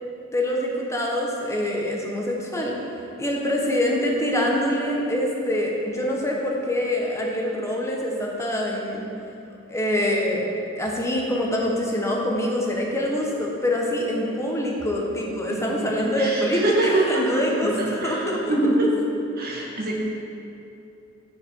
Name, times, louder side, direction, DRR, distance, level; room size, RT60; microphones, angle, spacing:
voice 1, 0.3-2.8 3.2-9.1 9.7-10.5 10.7-18.8, left 1 dB, 15° left, -2 dB, 1.2 m, -25 dB
voice 2, 16.0-16.3 16.6-17.0 18.0-18.1 18.5-18.7 19.4-20.0, right 2 dB, 45° right, -3 dB, 2.0 m, -23 dB
15.5 x 5.2 x 4.7 m, 2.7 s
head